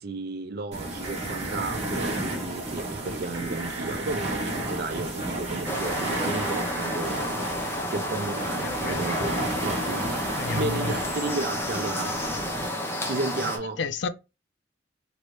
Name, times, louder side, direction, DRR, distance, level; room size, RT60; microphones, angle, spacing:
voice 1, 0.0-7.5 7.9-12.3 13.0-13.8, right 3 dB, 50° right, 0.4 m, -33 dB
sound 1, 0.7-12.7, right 1 dB, 35° right, 1.1 m, -33 dB
sound 2, 1.0-2.4 3.3-4.7 5.7-7.0 7.9-13.5, right 3 dB, 85° right, 0.8 m, -43 dB
sound 3, 5.6-13.6, left 1 dB, 15° left, 0.5 m, -31 dB
voice 2, 8.6-9.0 10.4-10.9 13.8-14.1, left 4 dB, 65° left, 0.4 m, -30 dB
3.0 x 2.6 x 3.0 m
head